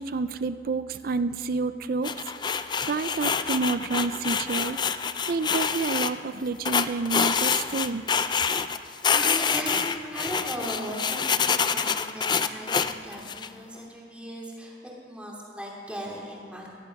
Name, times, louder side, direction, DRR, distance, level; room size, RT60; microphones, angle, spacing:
voice 1, 0.0-2.1 2.8-4.8 5.3-8.0, right 4 dB, 50° right, 12 dB, 0.4 m, -29 dB
sound 1, 2.0-6.1 6.6-8.8 9.0-13.5, left 6 dB, 25° left, 0.4 m, -26 dB
voice 2, 9.1-14.8 15.0-16.7, equal, 5° right, -3 dB, 2.6 m, -37 dB
18.5 x 12.0 x 5.9 m, 2.4 s
head